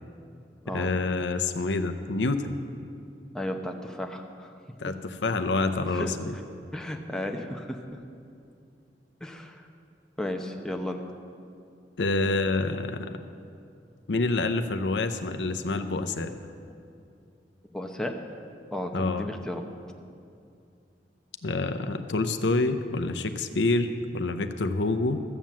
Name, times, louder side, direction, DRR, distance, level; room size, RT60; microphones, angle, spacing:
voice 1, 0.7-2.6 4.8-6.3 12.0-13.2 14.1-16.3 18.9-19.3 21.4-25.2, left 3 dB, 80° left, 8 dB, 0.7 m, -27 dB
voice 2, 3.3-4.5 5.9-6.1 6.7-8.0 9.2-9.7 10.2-11.0 17.7-18.1 18.7-19.6, left 1 dB, 5° left, 2 dB, 0.8 m, -34 dB
14.0 x 7.5 x 7.4 m, 2.5 s
head